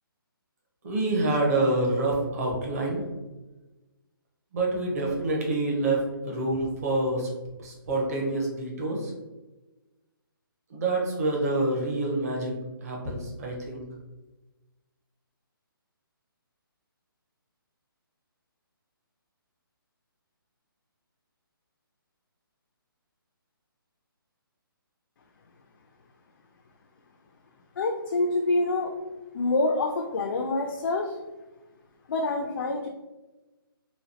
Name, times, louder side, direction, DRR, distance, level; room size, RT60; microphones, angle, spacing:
voice 1, 0.8-3.0 4.5-7.3 7.6-9.1 10.7-13.8, right 2 dB, 40° right, -1 dB, 0.9 m, -27 dB
voice 2, 27.8-28.9 29.3-31.2 32.1-32.9, left 2 dB, 60° left, 2 dB, 0.4 m, -26 dB
3.1 x 2.3 x 2.8 m, 1.1 s
hypercardioid pair, 150°, 12 cm